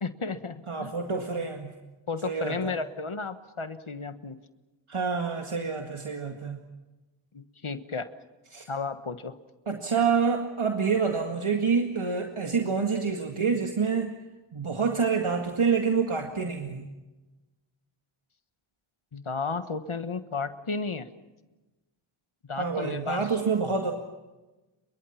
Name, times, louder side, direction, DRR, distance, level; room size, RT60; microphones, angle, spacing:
voice 1, 0.0-0.9 2.1-4.4 7.3-8.1 8.7-9.3 19.1-21.1 22.5-23.2, left 4 dB, 75° left, 10 dB, 1.4 m, -33 dB
voice 2, 0.7-1.7 2.2-2.7 4.9-6.6 8.5-8.7 9.7-14.1 14.5-16.9 22.6-23.9, right 5 dB, 75° right, 3 dB, 2.1 m, -27 dB
28.5 x 23.5 x 5.9 m, 1.1 s
wide cardioid pair, 50°, 50 cm